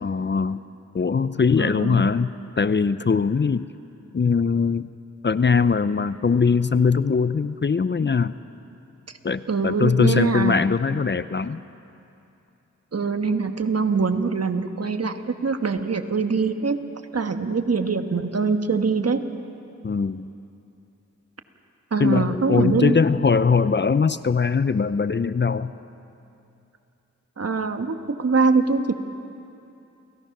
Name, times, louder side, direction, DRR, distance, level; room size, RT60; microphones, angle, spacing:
voice 1, 0.0-0.6 0.9-3.7 4.1-4.9 5.2-8.4 9.2-11.6 19.8-20.3 22.0-25.7, left 5 dB, 35° left, 14 dB, 0.6 m, -21 dB
voice 2, 1.6-2.0 9.5-10.6 12.9-16.8 17.1-19.2 21.9-22.9 27.4-28.9, right 4 dB, 55° right, 7 dB, 1.4 m, -23 dB
29.0 x 17.5 x 6.0 m, 2.7 s
cardioid pair, 50°, 30 cm